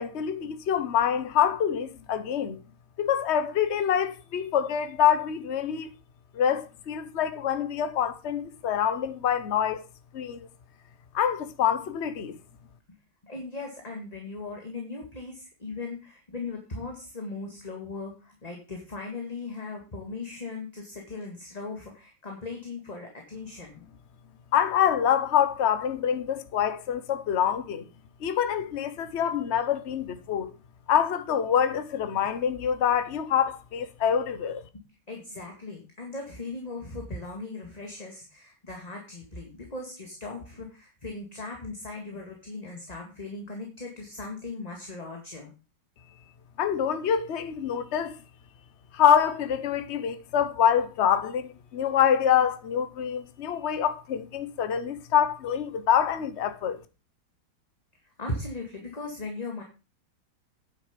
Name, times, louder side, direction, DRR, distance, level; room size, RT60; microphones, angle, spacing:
voice 1, 0.0-2.6 3.0-5.9 6.3-9.8 10.1-10.5 11.1-12.4 24.5-27.9 28.2-30.5 30.9-34.6 46.6-48.1 48.9-56.8, left 9 dB, 45° left, 1.0 m, -25 dB
voice 2, 13.2-23.8 35.1-45.5 58.2-59.6, left 3 dB, 20° left, 1.9 m, -38 dB
9.6 x 7.5 x 5.2 m
omnidirectional pair, 2.3 m